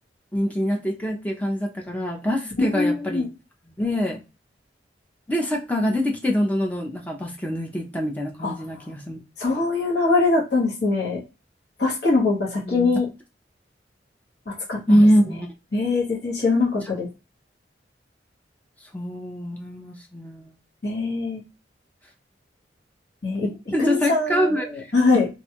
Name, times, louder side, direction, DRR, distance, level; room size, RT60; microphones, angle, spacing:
voice 1, 0.3-3.3 3.8-4.2 5.3-9.2 12.7-12.9 14.9-15.5 18.9-20.5 23.7-24.9, equal, 10° left, 0 dB, 0.5 m, -24 dB
voice 2, 2.6-3.2 8.4-8.5 9.4-11.2 11.8-13.0 14.7-14.8 15.3-15.4 15.7-17.1 20.8-21.4 23.2-25.3, left 3 dB, 65° left, -4 dB, 1.0 m, -22 dB
2.5 x 2.2 x 2.8 m, 0.28 s
head